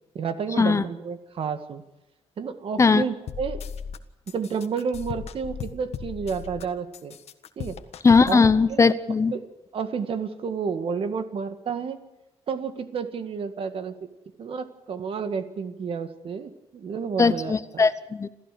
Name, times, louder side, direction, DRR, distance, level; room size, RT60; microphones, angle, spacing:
voice 1, 0.2-1.8 2.4-3.6 4.3-7.2 7.6-7.8 8.3-8.4 8.7-8.9 9.3-9.5 9.7-12.0 12.5-13.9 14.4-17.8, right 6 dB, 55° right, 9 dB, 1.9 m, -30 dB
sound 1, 3.3-4.0 4.3-6.6 6.9-8.6, left 7 dB, 70° left, 1.6 m, -36 dB
voice 2, 8.0-9.3 17.2-18.3, left 4 dB, 25° left, 14 dB, 0.8 m, -19 dB
27.5 x 14.5 x 6.8 m, 1.0 s
wide cardioid pair, 145°, 11 cm